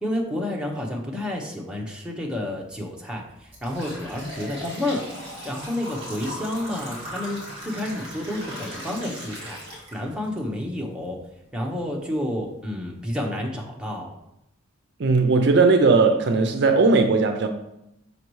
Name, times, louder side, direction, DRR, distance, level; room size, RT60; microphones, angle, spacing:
voice 1, 0.0-9.6 9.9-11.2 11.5-14.1, left 1 dB, 5° right, 0.8 m, -30 dB
sound 1, 2.6-2.8 3.2-10.4 10.8-10.9 11.8-11.9 12.4-12.5 12.9-13.2, equal, 25° right, 1.9 m, -38 dB
voice 2, 15.0-17.5, right 3 dB, 55° right, 0.5 m, -18 dB
6.5 x 5.2 x 3.1 m
head